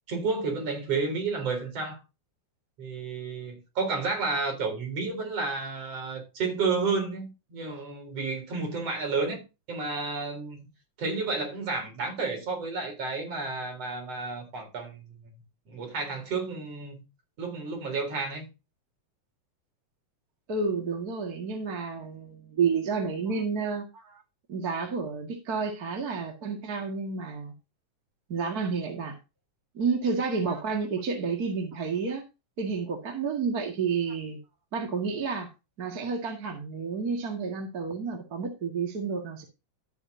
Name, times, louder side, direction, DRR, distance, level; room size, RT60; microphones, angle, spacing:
voice 1, 0.1-2.0 2.8-9.4 9.7-10.7 11.0-15.2 15.7-17.0 17.4-18.5, right 4 dB, 50° right, 4.8 m, -31 dB
voice 2, 20.5-23.9 24.5-27.5 28.3-29.2 29.7-32.2 32.6-34.4 34.7-35.5 35.8-39.4, right 5 dB, 35° right, 2.0 m, -30 dB
13.0 x 8.6 x 2.7 m
omnidirectional pair, 3.6 m